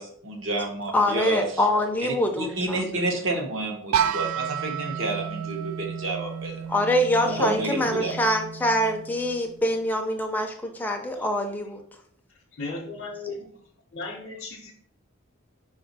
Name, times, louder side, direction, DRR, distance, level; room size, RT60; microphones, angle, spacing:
voice 1, 0.0-1.5 2.0-6.6 7.2-8.1, right 2 dB, 65° right, 3 dB, 0.9 m, -30 dB
voice 2, 0.9-2.8 6.7-11.8, left 1 dB, 10° left, 3 dB, 0.5 m, -24 dB
sound 1, 3.9-9.7, right 8 dB, 85° right, 0.3 m, -31 dB
voice 3, 7.3-7.7 11.1-11.2 12.5-13.5 13.9-14.7, left 2 dB, 50° left, -3 dB, 0.6 m, -35 dB
5.0 x 2.5 x 3.9 m, 0.62 s
head